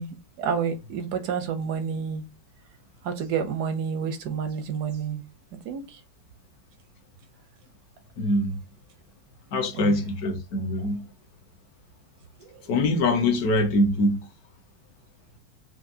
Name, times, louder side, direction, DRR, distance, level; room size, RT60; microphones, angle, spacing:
voice 1, 0.0-2.2 3.0-5.2 5.7-6.0 9.7-10.0 12.4-12.5, right 6 dB, 75° right, 0.9 m, -29 dB
voice 2, 8.2-8.5 9.5-11.0 12.7-14.2, left 1 dB, 60° left, 1.1 m, -23 dB
5.8 x 2.5 x 2.6 m
omnidirectional pair, 2.2 m